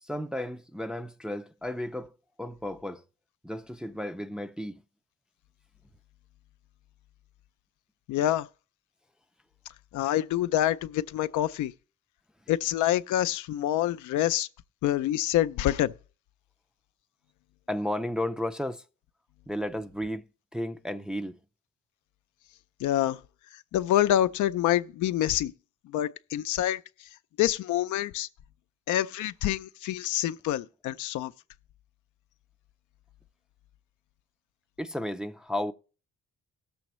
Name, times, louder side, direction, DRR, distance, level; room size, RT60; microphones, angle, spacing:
voice 1, 0.0-3.0 3.4-4.8 17.7-18.8 19.5-20.2 20.5-21.4 34.8-35.7, left 1 dB, 5° right, 0.4 m, -33 dB
voice 2, 8.1-8.5 9.9-11.7 12.5-14.5 14.8-15.9 22.8-23.2 23.7-25.5 25.9-26.8 27.4-28.3 28.9-31.3, left 12 dB, 80° left, 0.5 m, -26 dB
18.0 x 7.0 x 3.0 m
cardioid pair, 90°, 30 cm